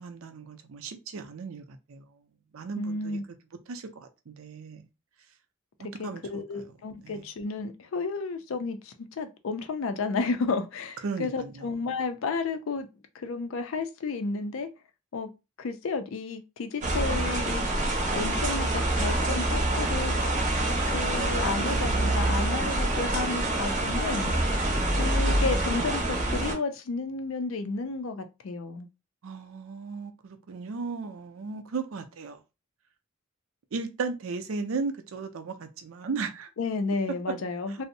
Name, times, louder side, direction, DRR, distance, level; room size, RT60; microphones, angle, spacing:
voice 1, 0.0-2.0 2.5-3.2 3.7-4.8 6.0-6.4 7.0-7.2 11.0-11.8 24.7-24.9 29.2-32.4 33.7-36.5 37.7-37.8, right 4 dB, 75° right, 0.5 m, -36 dB
voice 2, 2.8-3.2 6.0-12.9 13.1-14.7 15.1-15.3 15.6-17.7 18.1-20.1 20.9-24.3 25.0-28.9 36.6-37.8, left 4 dB, 70° left, 0.4 m, -32 dB
sound 1, 16.8-26.5, right 1 dB, 35° right, 0.6 m, -26 dB
2.5 x 2.0 x 2.6 m
head